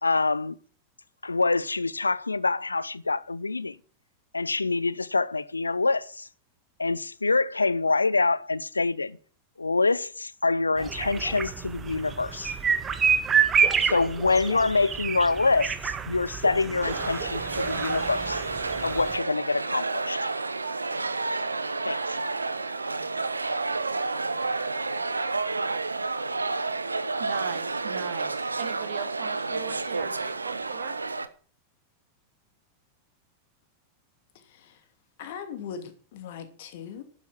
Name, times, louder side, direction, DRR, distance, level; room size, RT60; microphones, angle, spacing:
voice 1, 0.0-0.6 1.2-3.8 4.3-6.3 6.8-9.2 9.6-12.5 13.8-18.4 18.8-20.3 21.8-22.2, left 3 dB, 80° left, 0.6 m, -26 dB
sound 1, 10.8-19.2, right 7 dB, 20° right, 1.7 m, -28 dB
sound 2, 16.8-31.3, right 3 dB, 80° right, 1.0 m, -30 dB
voice 2, 27.2-31.0, right 10 dB, 55° right, 2.5 m, -38 dB
voice 3, 35.2-37.0, left 7 dB, 55° left, 2.7 m, -39 dB
12.0 x 10.0 x 7.5 m
figure-of-eight pair, 90°, 0 cm